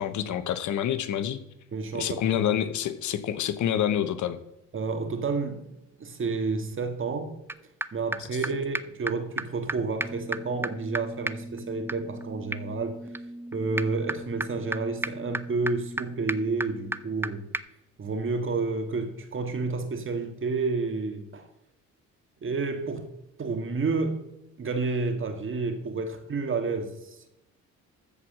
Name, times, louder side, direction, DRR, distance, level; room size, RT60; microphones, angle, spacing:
voice 1, 0.0-1.4 1.9-4.4, left 10 dB, 75° left, 1.2 m, -27 dB
voice 2, 1.7-2.5 4.7-5.7 6.0-7.4 7.9-13.0 13.5-17.5 18.0-21.5 22.4-23.1 23.4-24.3 24.6-27.3, right 4 dB, 40° right, 2.0 m, -30 dB
sound 1, 7.5-7.6 7.8-7.9 8.1-8.2 8.4-8.5 8.7-8.8 9.1-9.2 9.4-9.5 9.7-9.8 10.0-17.3 17.5-17.6, right 1 dB, 10° right, 0.6 m, -34 dB
14.0 x 4.8 x 7.5 m
cardioid pair, 90°, 30 cm